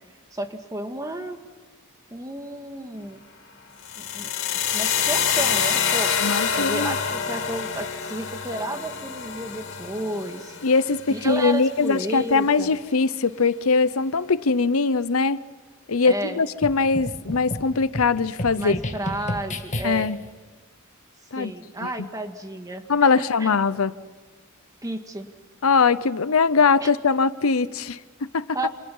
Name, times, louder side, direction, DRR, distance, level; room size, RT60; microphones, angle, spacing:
voice 1, 0.3-1.4 2.1-3.2 4.0-4.3 4.7-6.2 6.5-10.6 11.1-12.7 16.0-16.4 18.6-20.1 21.4-23.5 24.8-25.3 26.8-26.9 28.5-28.7, right 1 dB, 15° right, 1.9 m, -32 dB
sound 1, 3.8-11.8, left 7 dB, 60° left, 3.1 m, -26 dB
voice 2, 6.2-6.9 10.6-15.4 15.9-18.8 19.8-20.2 21.3-21.5 21.8-21.9 22.9-24.0 25.6-28.6, left 4 dB, 80° left, 0.8 m, -21 dB
sound 2, 16.6-20.3, left 1 dB, 35° left, 1.9 m, -32 dB
29.0 x 27.0 x 5.6 m
head